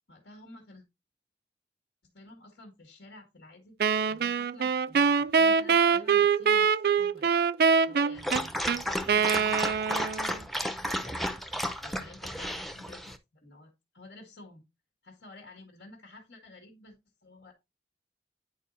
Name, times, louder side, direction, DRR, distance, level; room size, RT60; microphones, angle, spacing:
voice 1, 0.1-0.8 2.1-3.8 4.1-7.3 7.8-11.3 11.8-14.6 15.0-17.0 17.2-17.5, left 2 dB, 85° left, 1.9 m, -51 dB
Wind instrument woodwind instrument, 3.8-10.4, right 6 dB, 55° right, 0.3 m, -24 dB
Dog, 8.2-13.2, equal, ahead, 0.5 m, -33 dB
10.5 x 4.6 x 2.5 m
head